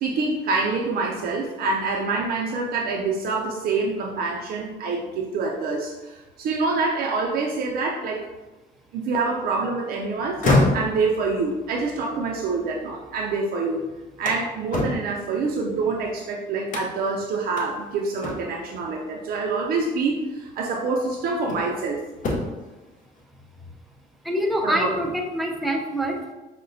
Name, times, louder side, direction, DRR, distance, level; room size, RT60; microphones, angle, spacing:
voice 1, 0.0-8.2 8.9-13.8 14.2-22.0 24.6-24.9, right 3 dB, 60° right, -1 dB, 0.4 m, -26 dB
sound 1, 10.2-13.3 13.7-16.1 16.7-17.2 17.6-17.7 18.2-18.7 20.0-20.1 20.7-21.8 22.1-22.7, left 2 dB, 50° left, 0.6 m, -27 dB
voice 2, 24.2-26.3, equal, ahead, 1 dB, 0.4 m, -25 dB
4.7 x 2.1 x 2.5 m, 1.1 s
cardioid pair, 110°, 17 cm